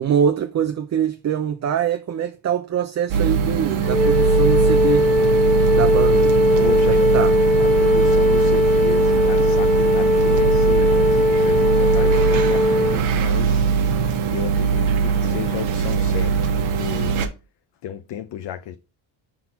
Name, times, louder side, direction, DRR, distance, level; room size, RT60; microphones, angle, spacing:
voice 1, 0.0-5.1 5.7-6.3 6.8-7.3, right 8 dB, 35° right, 0.5 m, -23 dB
sound 1, 3.1-17.3, right 6 dB, 85° right, 1.3 m, -21 dB
Wind instrument woodwind instrument, 3.8-13.0, left 1 dB, 15° left, 0.7 m, -18 dB
voice 2, 6.6-7.3 7.6-13.7 14.3-17.2 17.8-18.8, left 10 dB, 60° left, 0.7 m, -33 dB
6.1 x 4.3 x 4.3 m
cardioid pair, 95°, 48 cm